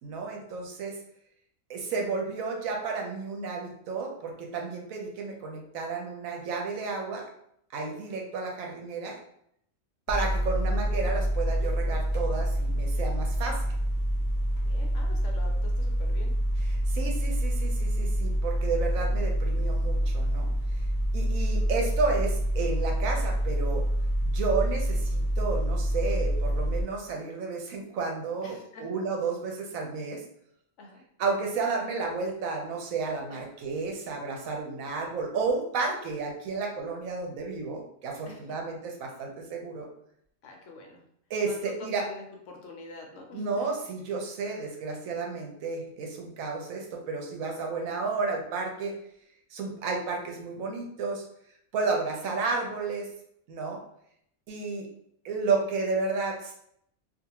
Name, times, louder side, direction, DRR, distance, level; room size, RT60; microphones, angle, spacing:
voice 1, 0.0-1.0 1.7-7.2 7.7-9.2 10.1-13.7 16.9-20.5 21.1-23.8 24.2-30.2 31.2-39.9 41.3-42.1 43.3-48.9 49.5-51.2 51.7-53.1 53.5-53.8 54.5-54.9 55.2-56.5, right 4 dB, 80° right, 1 dB, 1.1 m, -32 dB
sound 1, 10.1-26.8, equal, 55° left, 0.4 m, -27 dB
voice 2, 14.6-16.3 28.4-28.9 30.8-31.0 33.3-33.4 38.3-38.4 40.4-41.0 41.5-43.7, left 3 dB, 70° left, 1 dB, 0.9 m, -45 dB
2.5 x 2.4 x 2.8 m, 0.71 s
omnidirectional pair, 1.4 m